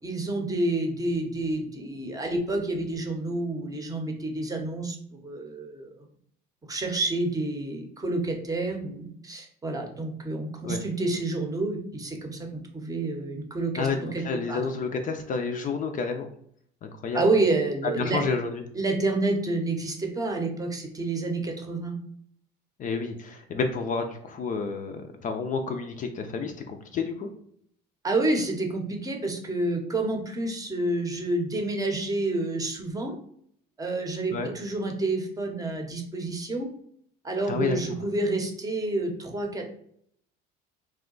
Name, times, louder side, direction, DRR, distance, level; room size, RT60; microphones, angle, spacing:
voice 1, 0.0-6.1 6.7-13.9 14.1-14.6 17.1-18.2 18.7-22.0 28.0-33.1 33.8-36.7 37.2-39.7, right 2 dB, 15° right, 3 dB, 0.7 m, -29 dB
voice 2, 13.8-16.3 16.8-17.2 18.0-18.6 22.8-27.3 34.3-34.5 37.5-37.8, left 4 dB, 40° left, 6 dB, 0.4 m, -30 dB
2.7 x 2.2 x 3.8 m, 0.66 s
supercardioid pair, 95°, 21 cm